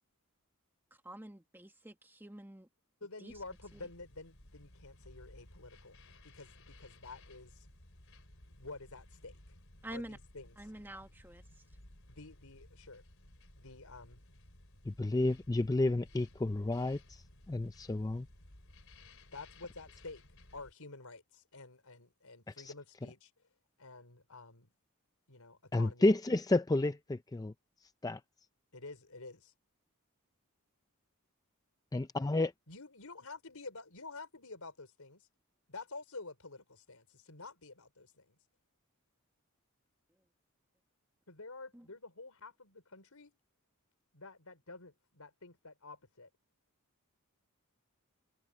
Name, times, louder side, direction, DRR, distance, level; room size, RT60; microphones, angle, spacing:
voice 1, 1.0-2.7 3.2-3.3 3.7-3.8 9.8-10.2 10.6-11.5 41.7-41.9, right 1 dB, 10° right, 1.5 m, -47 dB
voice 2, 3.0-7.7 8.5-9.3 9.9-10.6 12.1-13.0 13.5-14.2 19.3-20.2 20.5-23.3 23.8-24.7 25.3-26.1 28.7-29.5 32.7-35.3 35.7-38.3 41.3-43.3 44.1-46.3, left 3 dB, 80° left, 4.4 m, -50 dB
sound 1, 3.3-20.7, left 1 dB, 65° left, 4.4 m, -58 dB
voice 3, 14.9-18.3 22.6-22.7 25.7-27.5 28.0-28.2 31.9-32.5, left 2 dB, 15° left, 0.4 m, -31 dB
head